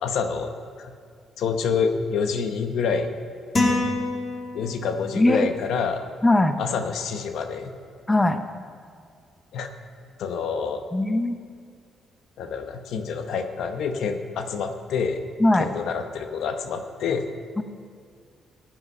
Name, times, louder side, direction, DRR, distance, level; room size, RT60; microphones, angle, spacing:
voice 1, 0.0-0.9 1.4-3.2 4.5-6.0 6.6-7.7 9.5-9.7 10.2-10.8 12.4-15.2 15.6-17.2, left 6 dB, 75° left, 7 dB, 0.9 m, -27 dB
sound 1, 3.5-5.1, left 2 dB, 35° left, 2.4 m, -25 dB
voice 2, 5.2-5.5 6.2-6.6 8.1-8.4 10.9-11.4 15.4-15.7 17.6-17.7, left 1 dB, 15° left, 9 dB, 0.8 m, -20 dB
15.0 x 8.8 x 5.5 m, 2.2 s
cardioid pair, 90°, 0 cm